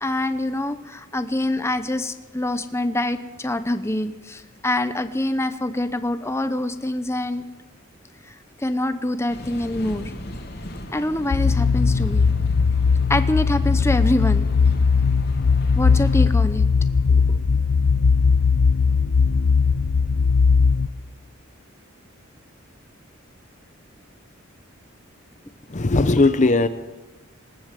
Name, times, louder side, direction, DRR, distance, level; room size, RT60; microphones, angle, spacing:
voice 1, 0.0-7.4 8.6-10.1 10.9-12.3 13.1-14.5 15.7-16.7 17.1-17.4 26.1-26.2, left 1 dB, 15° left, 0.9 m, -25 dB
sound 1, 9.3-16.2, equal, 50° left, 2.9 m, -35 dB
sound 2, 11.3-20.9, left 5 dB, 85° left, 0.6 m, -19 dB
voice 2, 25.7-26.7, left 3 dB, 35° left, 0.8 m, -18 dB
19.5 x 18.0 x 7.6 m
head